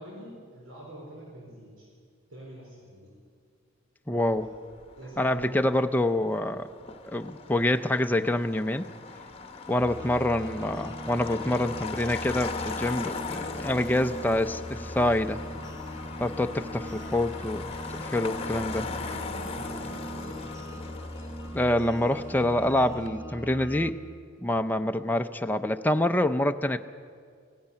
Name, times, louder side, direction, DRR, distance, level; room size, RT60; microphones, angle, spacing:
voice 1, 0.0-1.9 2.3-3.1 4.4-4.5 5.0-5.5 18.2-20.5, right 1 dB, 85° right, -3 dB, 4.5 m, -45 dB
voice 2, 4.1-4.5 5.2-6.7 7.0-8.9 9.7-15.4 16.2-17.7 18.0-18.9 21.5-24.0 24.4-26.8, left 1 dB, 10° left, 6 dB, 0.5 m, -26 dB
Motor vehicle (road), 4.3-23.1, left 4 dB, 30° left, 1.1 m, -39 dB
sound 1, 9.8-23.9, equal, 15° right, 1.6 m, -40 dB
16.0 x 16.0 x 9.8 m, 2.1 s
head